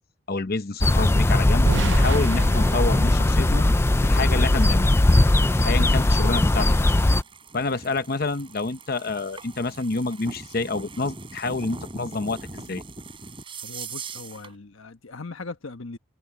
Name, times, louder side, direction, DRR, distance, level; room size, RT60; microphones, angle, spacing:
voice 1, 0.3-3.7 4.0-4.9 5.6-6.9 7.5-12.8, left 3 dB, 45° left, 0.8 m, -28 dB
sound 1, 0.8-7.2, left 1 dB, 10° left, 0.3 m, -19 dB
sound 2, 1.7-4.6, right 4 dB, 60° right, 0.6 m, -31 dB
sound 3, 3.8-14.5, right 4 dB, 25° right, 4.1 m, -42 dB
voice 2, 13.6-16.0, left 3 dB, 75° left, 1.2 m, -39 dB
head